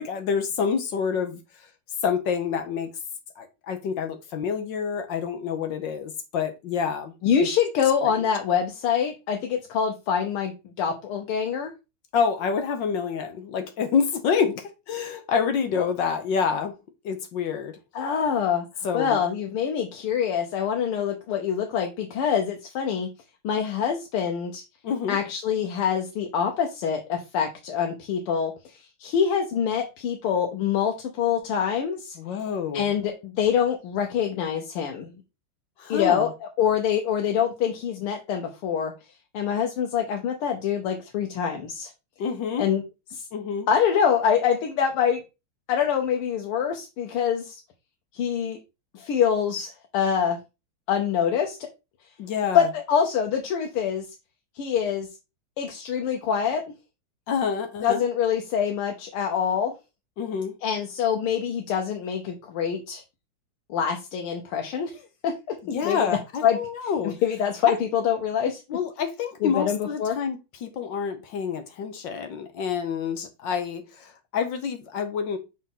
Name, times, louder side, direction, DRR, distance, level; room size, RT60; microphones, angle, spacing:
voice 1, 0.0-1.7 2.0-2.9 3.4-7.5 8.0-8.2 12.1-16.7 17.0-17.8 18.8-19.2 24.8-25.2 32.2-32.9 35.8-36.3 42.2-42.7 43.3-43.7 52.2-52.7 57.3-58.0 60.2-60.6 65.7-67.1 67.6-67.8 68.7-75.4, left 6 dB, 65° left, 1.4 m, -28 dB
voice 2, 7.2-11.7 17.9-18.7 18.9-23.1 23.4-24.6 25.1-32.2 32.7-35.1 35.9-36.3 36.6-38.9 39.3-41.9 42.6-42.8 43.1-43.3 43.7-45.2 45.7-47.6 48.1-48.6 48.9-50.4 50.9-51.6 52.5-54.0 54.6-55.1 55.6-56.6 57.8-59.7 60.6-63.0 63.7-66.1 66.4-66.6 67.0-68.6 69.4-70.2, left 8 dB, 85° left, 1.7 m, -25 dB
6.3 x 4.0 x 3.7 m
omnidirectional pair, 2.4 m